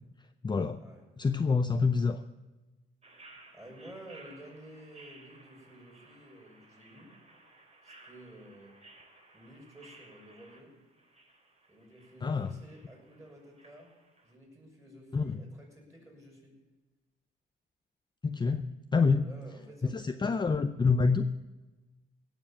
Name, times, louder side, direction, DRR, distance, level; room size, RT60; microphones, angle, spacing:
voice 1, 0.4-0.8 1.2-2.2 12.2-12.5 15.1-15.4 18.2-19.3 19.8-21.3, left 4 dB, 20° left, 9 dB, 0.6 m, -27 dB
sound 1, 3.0-14.3, right 2 dB, 35° right, 3.7 m, -57 dB
voice 2, 3.5-7.2 7.8-8.8 9.3-10.8 11.7-13.9 14.2-16.6 19.1-20.6, right 1 dB, 15° right, -1 dB, 6.9 m, -52 dB
17.0 x 7.3 x 8.7 m, 1.2 s
cardioid pair, 90°, 20 cm